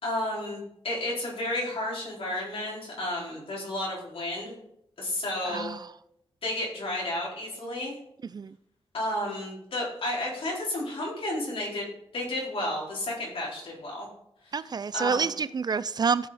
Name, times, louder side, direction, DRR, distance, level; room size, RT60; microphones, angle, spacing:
voice 1, 0.0-4.6 5.0-5.7 6.4-8.0 8.9-11.8 12.1-14.1 14.9-15.3, left 1 dB, 70° left, 4.4 m, -32 dB
voice 2, 5.4-5.9 8.3-8.6 14.5-16.3, right 5 dB, 45° right, 0.4 m, -28 dB
15.5 x 5.6 x 4.2 m
wide cardioid pair, 120°, 10 cm